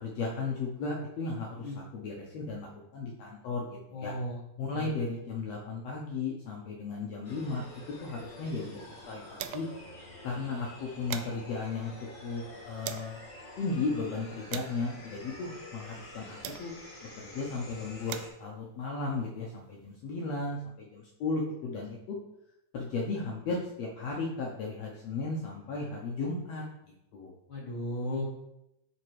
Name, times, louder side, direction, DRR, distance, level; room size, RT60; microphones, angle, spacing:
voice 1, 0.0-2.7 2.9-4.1 4.6-7.6 8.0-8.8 9.1-9.7 10.2-11.9 12.2-13.2 13.6-16.7 17.2-22.2 22.7-26.6 27.1-27.4, left 3 dB, 80° left, -2 dB, 1.4 m, -35 dB
voice 2, 3.9-4.4 4.7-4.9 27.5-28.3, left 1 dB, 50° left, -5 dB, 1.6 m, -35 dB
sound 1, 7.2-18.3, left 1 dB, 30° left, 3.0 m, -48 dB
sound 2, 8.1-9.9 10.2-10.3 10.7-13.2 13.8-17.0 17.7-20.0, right 11 dB, 80° right, 2.0 m, -45 dB
9.1 x 4.0 x 4.7 m, 0.83 s
omnidirectional pair, 4.2 m